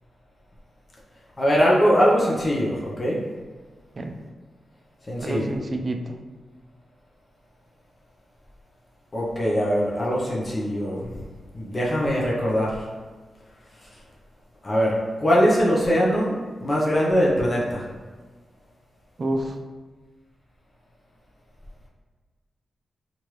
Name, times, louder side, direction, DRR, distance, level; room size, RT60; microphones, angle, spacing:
voice 1, 1.4-3.2 5.1-5.5 9.1-11.1 11.5-12.8 14.6-16.3 16.6-17.8, equal, 30° left, -5 dB, 0.7 m, -21 dB
voice 2, 5.2-6.1 19.2-19.5, right 1 dB, 45° right, 5 dB, 0.3 m, -28 dB
3.1 x 2.5 x 3.0 m, 1.4 s
cardioid pair, 75°, 0 cm